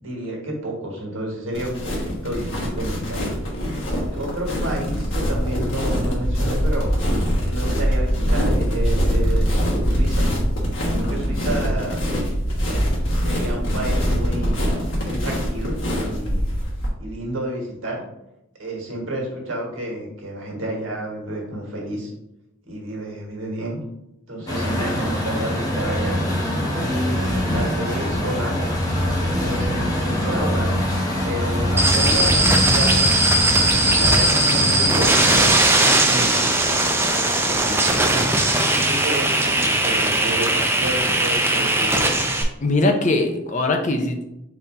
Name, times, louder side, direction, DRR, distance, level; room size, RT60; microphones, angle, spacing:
voice 1, 0.0-3.3 4.1-7.0 7.4-9.6 9.8-10.3 11.0-12.0 13.2-14.6 15.0-16.6 17.0-18.0 18.6-22.1 22.7-23.8 24.3-26.2 26.7-28.7 29.4-30.8 31.2-33.0 33.8-36.7 37.3-38.3 38.7-42.2, right 1 dB, 80° right, -2 dB, 1.5 m, -30 dB
sound 1, 1.5-16.9, equal, 75° left, 1.3 m, -23 dB
Truck, 24.5-35.5, left 1 dB, 20° left, 0.9 m, -23 dB
sound 2, 31.8-42.4, right 2 dB, 10° right, 0.4 m, -19 dB
voice 2, 42.6-44.3, left 2 dB, 35° left, 4 dB, 0.6 m, -21 dB
4.2 x 2.7 x 4.3 m, 0.87 s
head